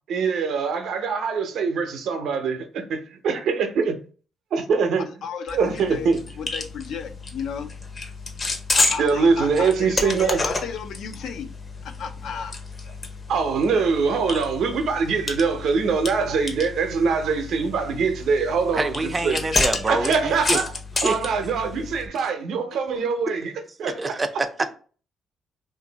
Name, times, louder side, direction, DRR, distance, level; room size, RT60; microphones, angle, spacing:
voice 1, 0.1-4.0 4.5-5.1 5.5-6.2 9.0-10.4 13.3-18.8 19.2-19.4 19.9-20.6 21.0-23.5 23.8-24.1, right 5 dB, 75° right, 0.6 m, -23 dB
voice 2, 5.0-7.9 8.7-11.5 11.8-12.5, left 6 dB, 70° left, 0.4 m, -34 dB
sound 1, 5.5-22.1, left 3 dB, 35° left, 0.7 m, -30 dB
voice 3, 18.7-20.6 21.0-21.5 23.8-24.7, right 2 dB, 25° right, 0.4 m, -26 dB
2.6 x 2.5 x 3.9 m
cardioid pair, 100°, 0 cm